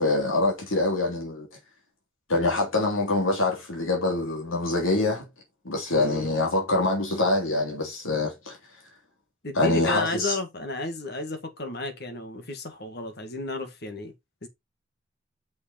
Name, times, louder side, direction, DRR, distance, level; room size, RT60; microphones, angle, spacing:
voice 1, 0.0-1.5 2.3-5.3 5.6-8.6 9.5-10.4, left 2 dB, 85° left, 3.2 m, -25 dB
voice 2, 5.9-6.3 9.4-14.1 14.4-14.5, left 2 dB, 50° left, 1.7 m, -32 dB
6.4 x 5.2 x 4.3 m
head